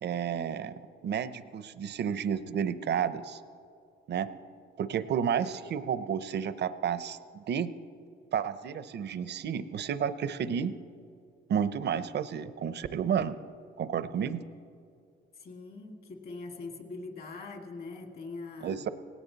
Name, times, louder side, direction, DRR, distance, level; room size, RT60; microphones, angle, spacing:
voice 1, 0.0-3.4 4.1-4.3 4.8-7.7 8.3-10.7 11.5-13.3 13.8-14.4 18.6-18.9, right 8 dB, 60° right, 14 dB, 0.7 m, -31 dB
voice 2, 15.4-18.8, left 3 dB, 50° left, 3 dB, 2.3 m, -42 dB
18.0 x 17.5 x 4.1 m, 2.4 s
cardioid pair, 90°, 20 cm